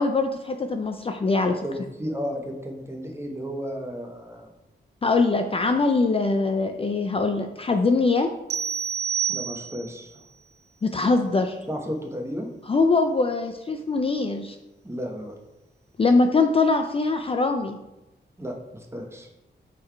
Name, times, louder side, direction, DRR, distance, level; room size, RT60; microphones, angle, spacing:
voice 1, 0.0-1.6 5.0-8.3 10.8-11.6 12.7-14.6 16.0-17.8, left 3 dB, 30° left, 5 dB, 0.4 m, -22 dB
voice 2, 1.6-4.5 9.3-10.1 11.7-12.5 14.8-15.3 18.4-19.3, equal, 15° right, 2 dB, 1.0 m, -33 dB
sound 1, 8.5-10.0, right 8 dB, 65° right, 0.5 m, -28 dB
5.4 x 3.8 x 4.5 m, 0.97 s
wide cardioid pair, 90°, 18 cm